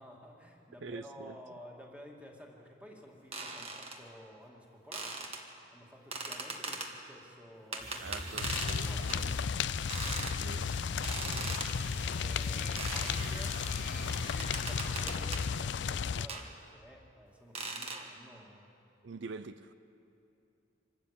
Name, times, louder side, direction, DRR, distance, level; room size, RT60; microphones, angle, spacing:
voice 1, 0.0-9.4 11.2-11.5 11.9-18.7, equal, 5° right, 2.3 m, -53 dB
voice 2, 0.8-1.4 8.0-9.3 10.4-10.7 19.0-19.7, right 4 dB, 65° right, 0.5 m, -45 dB
sound 1, 3.3-4.0 4.9-5.4 6.1-6.9 7.7-8.8 9.1-9.3 9.9-10.4 11.0-11.7 12.8-13.3 14.4-15.5 16.3-16.5 17.5-18.0, right 3 dB, 30° right, 1.5 m, -39 dB
sound 2, 7.8-15.4, right 1 dB, 45° right, 4.7 m, -45 dB
sound 3, 8.4-16.3, left 6 dB, 60° left, 0.4 m, -34 dB
26.0 x 13.0 x 8.5 m
head